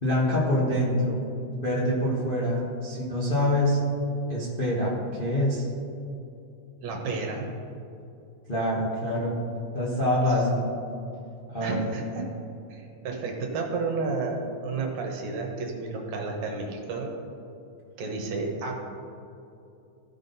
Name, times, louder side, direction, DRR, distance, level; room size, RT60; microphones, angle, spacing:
voice 1, 0.0-1.2 1.5-3.8 4.3-5.6 8.5-9.4 9.7-10.7 11.5-11.8, left 1 dB, 45° left, -6 dB, 0.7 m, -25 dB
voice 2, 6.8-7.5 11.6-12.3 12.7-17.1 18.0-18.7, right 3 dB, 70° right, 1 dB, 2.3 m, -31 dB
15.5 x 5.9 x 4.0 m, 2.7 s
omnidirectional pair, 3.6 m